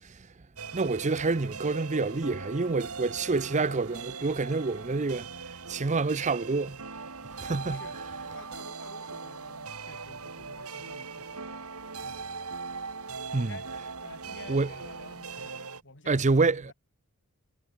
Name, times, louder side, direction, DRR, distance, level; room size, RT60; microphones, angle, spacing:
electronic pop ambience, 0.6-15.8, right 4 dB, 75° right, 2.9 m, -40 dB
voice 1, 0.7-6.8 7.4-7.8 13.3-13.5 14.5-14.7 16.1-16.7, right 3 dB, 35° right, 0.6 m, -28 dB
voice 2, 7.7-12.6 13.4-13.7 14.0-16.7, left 3 dB, 55° left, 5.1 m, -51 dB
head